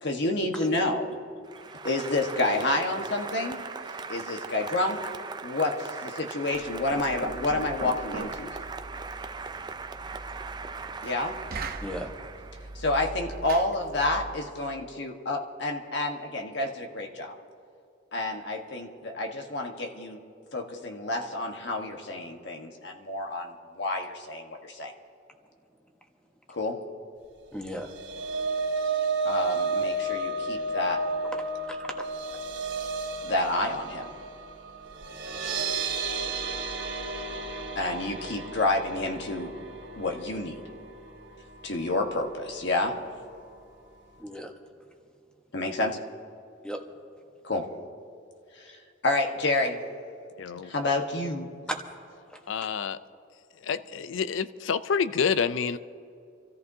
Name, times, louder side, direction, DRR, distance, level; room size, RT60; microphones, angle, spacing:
voice 1, 0.0-1.2 1.8-3.6 4.1-5.0 5.4-8.6 11.0-11.3 12.7-17.3 18.1-20.2 20.5-24.9 26.5-26.8 29.2-31.0 33.2-34.1 37.7-39.5 40.0-40.6 41.6-43.0 45.5-46.0 47.4-47.7 48.6-48.8 49.0-49.8 50.6-51.5, left 2 dB, 65° left, 2 dB, 1.3 m, -29 dB
Applause, 1.4-13.0, right 4 dB, 25° right, 0.5 m, -39 dB
Knock, 6.5-14.4, right 3 dB, 50° right, 0.8 m, -41 dB
voice 2, 11.8-12.1 27.5-27.9 31.3-31.4 31.7-31.9 44.2-44.5 46.6-46.8 51.7-51.8 52.3-52.7, equal, 5° left, 3 dB, 1.1 m, -36 dB
sound 1, 27.6-41.9 42.2-42.5 42.8-42.9, right 3 dB, 85° right, 2.3 m, -32 dB
voice 3, 50.4-50.7 52.5-53.0 53.6-55.8, left 6 dB, 80° left, 14 dB, 0.5 m, -28 dB
27.5 x 14.0 x 2.8 m, 2.6 s
head